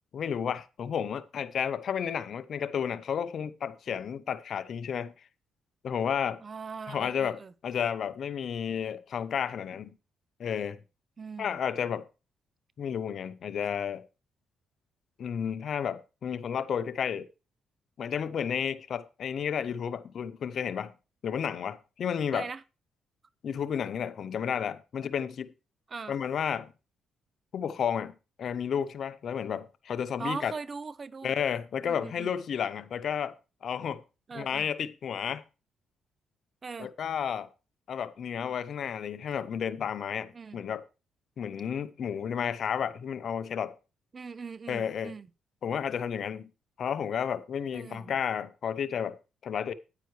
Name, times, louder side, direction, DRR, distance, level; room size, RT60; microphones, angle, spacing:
voice 1, 0.1-5.1 5.8-6.4 6.9-9.9 10.4-10.8 11.4-12.1 12.8-14.0 15.2-17.3 18.0-20.9 21.2-22.5 23.4-25.5 26.1-26.7 27.5-28.1 28.4-30.5 31.2-34.0 34.3-35.4 36.8-37.5 37.9-40.8 41.4-43.8 44.7-45.1 45.6-46.5 46.8-49.7, left 8 dB, 60° left, 0.6 m, -32 dB
voice 2, 6.4-7.5 11.2-11.6 22.3-22.6 25.9-26.2 30.2-31.3 31.8-32.3 34.3-34.7 36.6-36.9 40.3-40.6 44.1-45.3 47.7-48.1, right 4 dB, 35° right, 0.4 m, -40 dB
9.5 x 9.1 x 3.1 m
cardioid pair, 100°, 0 cm